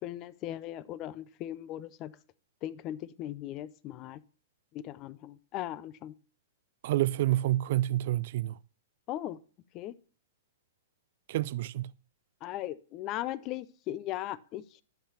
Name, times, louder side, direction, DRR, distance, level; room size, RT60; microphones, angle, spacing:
voice 1, 0.0-2.2 2.6-4.2 4.7-6.1 9.1-9.4 9.7-9.9 12.4-14.8, left 13 dB, 35° left, 0.5 m, -38 dB
voice 2, 6.8-8.6 11.3-11.9, right 15 dB, 55° right, 0.3 m, -28 dB
11.5 x 5.6 x 2.8 m
hypercardioid pair, 120°, 0 cm